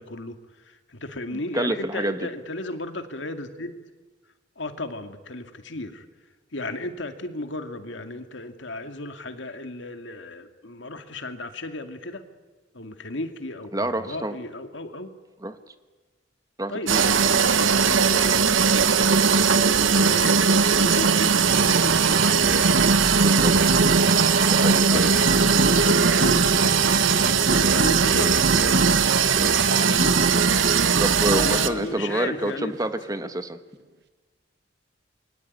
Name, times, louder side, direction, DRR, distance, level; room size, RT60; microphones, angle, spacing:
voice 1, 0.0-3.7 4.6-6.1 6.5-12.2 12.7-15.1 16.7-18.8 19.3-23.0 23.4-24.1 24.9-26.4 26.6-28.8 29.4-30.2 31.3-32.7, left 2 dB, 70° left, 7 dB, 2.3 m, -34 dB
voice 2, 1.3-2.3 13.7-14.4 15.4-15.6 16.6-17.0 23.2-23.5 24.5-25.1 29.3-29.5 31.0-33.6, right 1 dB, 20° right, 10 dB, 1.3 m, -28 dB
sound 1, 16.9-31.7, right 6 dB, 90° right, 1.3 m, -20 dB
sound 2, 21.5-32.7, right 3 dB, 55° right, 1.2 m, -26 dB
27.5 x 22.5 x 9.6 m, 1.3 s
head